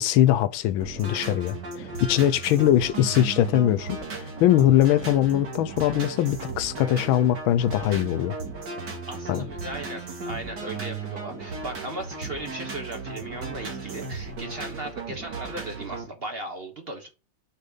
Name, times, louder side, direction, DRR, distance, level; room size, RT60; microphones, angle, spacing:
voice 1, 0.0-1.6 2.0-8.3 9.3-9.4, left 12 dB, 85° left, 1.5 m, -21 dB
sound 1, 0.8-16.0, right 3 dB, 60° right, 2.6 m, -36 dB
voice 2, 9.1-17.1, right 2 dB, 35° right, 1.1 m, -37 dB
6.6 x 5.3 x 4.0 m
omnidirectional pair, 2.2 m